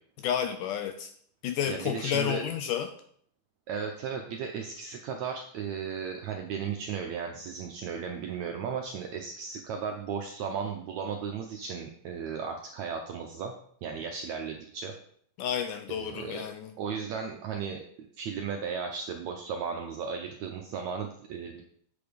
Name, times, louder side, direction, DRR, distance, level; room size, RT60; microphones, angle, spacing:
voice 1, 0.2-1.1 1.4-2.9 15.4-16.7, left 9 dB, 80° left, 7 dB, 1.9 m, -31 dB
voice 2, 1.7-2.4 3.7-13.5 13.8-14.9 15.9-16.5 16.8-17.8 18.2-21.6, right 6 dB, 75° right, 3 dB, 1.6 m, -35 dB
8.4 x 6.8 x 5.2 m, 0.63 s
omnidirectional pair, 4.2 m